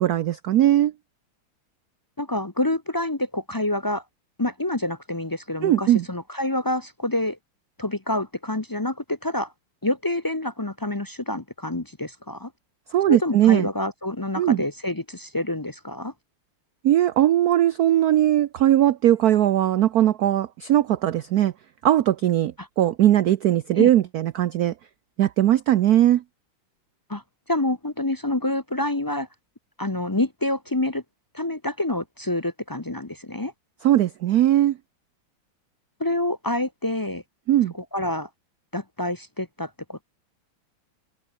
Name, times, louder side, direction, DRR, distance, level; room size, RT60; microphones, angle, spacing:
voice 1, 0.1-0.9 5.6-6.0 12.9-13.7 14.4-14.6 16.8-21.5 21.8-24.7 25.2-26.2 33.8-34.8 37.5-37.7, right 12 dB, 70° right, 0.9 m, -19 dB
voice 2, 2.2-4.0 4.4-7.4 7.8-9.5 9.8-12.5 13.1-16.1 22.6-22.7 23.8-23.9 27.1-27.2 27.5-29.3 29.8-31.0 31.3-33.5 36.0-37.2 37.7-38.3 38.7-40.0, left 1 dB, 30° left, 0.3 m, -27 dB
omnidirectional pair, 2.3 m